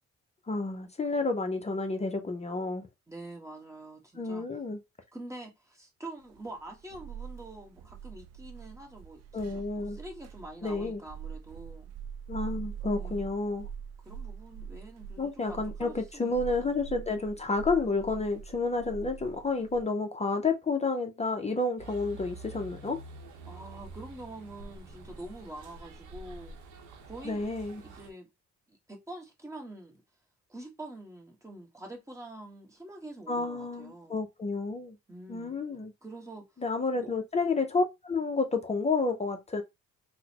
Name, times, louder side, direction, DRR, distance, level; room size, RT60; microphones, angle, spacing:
voice 1, 0.5-2.9 4.1-4.8 9.3-10.0 10.6-11.0 12.3-13.7 15.2-23.0 27.2-27.8 33.3-35.0 35.3-35.9 36.6-39.6, left 3 dB, 20° left, 0.5 m, -30 dB
voice 2, 3.1-4.4 5.1-11.9 12.9-13.3 14.0-16.5 23.5-26.5 27.0-27.5 27.8-28.3 28.7-30.0 30.5-34.2 35.1-35.6 36.0-36.4 36.9-37.1, right 2 dB, 10° right, 1.2 m, -46 dB
sound 1, 6.3-19.8, right 7 dB, 60° right, 0.5 m, -43 dB
sound 2, 21.8-28.1, right 3 dB, 80° right, 0.8 m, -47 dB
3.8 x 2.1 x 2.8 m
cardioid pair, 90°, 30 cm